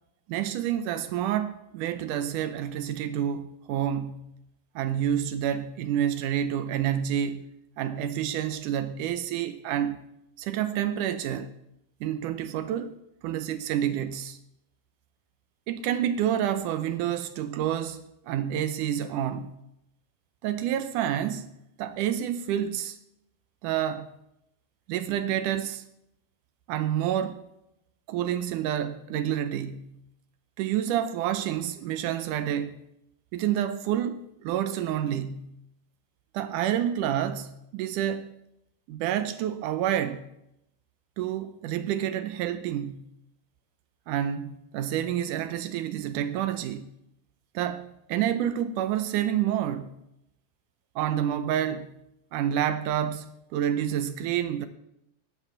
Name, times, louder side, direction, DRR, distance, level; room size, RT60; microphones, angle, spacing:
voice 1, 0.3-4.3 4.8-7.4 7.8-10.0 10.4-11.6 12.0-13.0 13.2-14.4 15.7-19.6 20.4-21.5 21.8-23.0 23.6-24.1 24.9-25.8 26.7-27.5 28.1-30.0 30.6-32.8 33.3-35.6 36.3-38.3 38.9-40.3 41.2-43.1 44.1-46.9 47.5-49.9 51.0-51.9 52.3-54.7, right 10 dB, 75° right, 2.0 m, -28 dB
12.0 x 10.0 x 7.2 m
omnidirectional pair, 4.1 m